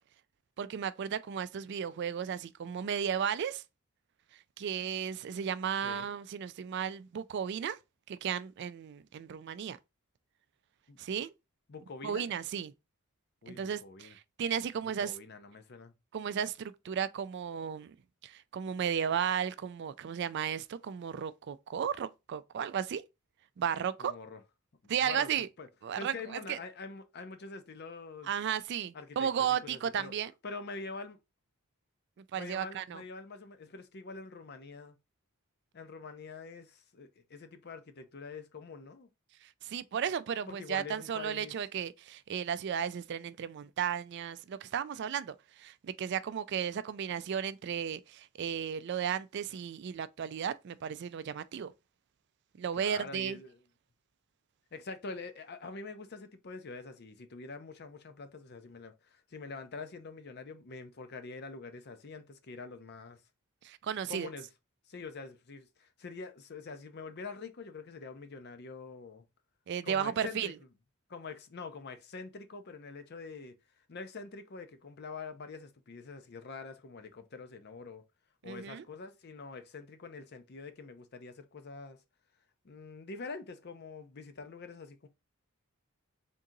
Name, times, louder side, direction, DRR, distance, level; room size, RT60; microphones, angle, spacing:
voice 1, 0.6-3.6 4.6-7.8 8.1-9.8 11.0-11.3 12.0-12.7 13.5-15.2 16.1-18.0 18.2-23.0 23.6-24.1 24.9-25.5 25.8-26.1 26.5-26.6 28.2-30.3 32.3-33.0 39.4-51.7 52.6-53.4 63.6-64.3 69.7-70.5 78.4-78.8, right 8 dB, 55° right, 0.3 m, -34 dB
voice 2, 11.7-12.2 13.4-14.2 14.8-16.0 24.0-24.4 24.8-25.7 26.0-28.3 28.9-30.1 30.4-31.2 32.3-35.0 35.7-39.1 40.5-41.6 52.7-53.6 54.7-63.2 64.1-64.5 64.9-69.3 69.8-70.5 71.1-73.5 73.9-78.0 78.4-82.0 82.6-85.1, left 4 dB, 50° left, 0.6 m, -45 dB
3.7 x 2.8 x 3.7 m
head